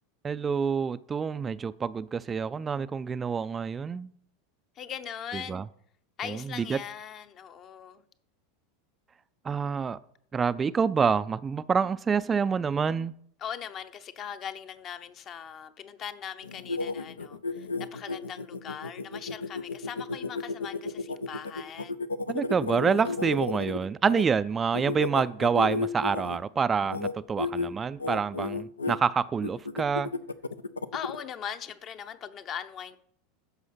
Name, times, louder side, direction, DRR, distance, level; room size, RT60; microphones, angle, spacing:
voice 1, 0.2-4.1 5.5-5.6 6.3-6.4 6.7-6.8 9.4-10.0 10.3-13.1 22.3-30.1, right 6 dB, 20° right, 0.3 m, -27 dB
voice 2, 4.8-5.6 6.2-8.0 13.4-22.0 30.9-33.0, left 8 dB, 35° left, 0.9 m, -40 dB
sound 1, 16.4-24.2 24.7-26.4 26.8-27.1 27.4-27.7 28.0-29.0 29.4-31.2, left 3 dB, 85° left, 0.5 m, -33 dB
14.0 x 5.6 x 5.7 m
figure-of-eight pair, 85°, 0 cm